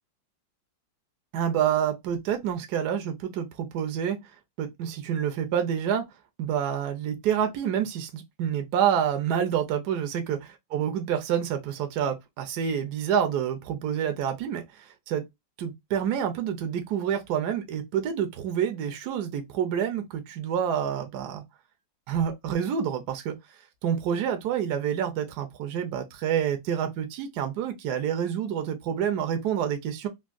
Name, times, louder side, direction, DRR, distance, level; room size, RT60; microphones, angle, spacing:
voice 1, 1.3-4.2 4.6-6.0 6.4-15.2 15.6-21.4 22.1-23.4 23.8-30.1, right 9 dB, 70° right, 1.0 m, -28 dB
3.5 x 2.2 x 2.4 m
omnidirectional pair, 2.1 m